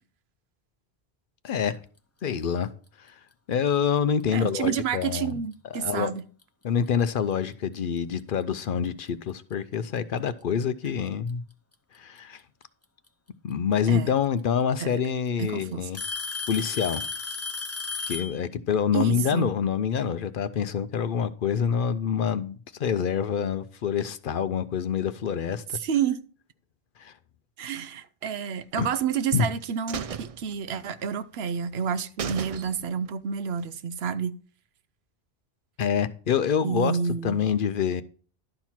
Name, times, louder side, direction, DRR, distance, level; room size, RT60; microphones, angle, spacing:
voice 1, 1.4-1.8 2.2-2.7 3.0-3.2 3.5-5.4 5.7-6.1 6.6-11.4 11.9-12.4 13.4-16.0 16.5-17.0 18.1-25.8 27.0-27.1 28.8-28.9 29.3-29.5 35.8-38.0, left 7 dB, 60° left, 0.7 m, -26 dB
voice 2, 4.3-6.2 13.9-14.1 14.8-15.0 15.4-15.9 18.9-19.5 25.8-26.2 27.6-34.4 36.6-37.4, right 7 dB, 75° right, 0.9 m, -29 dB
Alarm / Tick-tock, 4.4-4.7 5.5-5.6 6.4-6.5 8.2-8.3 9.5-9.6 10.9-11.3 13.1-13.2 14.4-14.5 14.8-15.3 15.9-18.4, left 4 dB, 15° left, 0.6 m, -33 dB
sound 1, 28.8-29.5 29.9-31.2 31.5-31.6 31.9-32.0 32.2-33.1 33.4-33.5, right 7 dB, 50° right, 0.4 m, -36 dB
12.0 x 4.5 x 5.7 m
omnidirectional pair, 1.1 m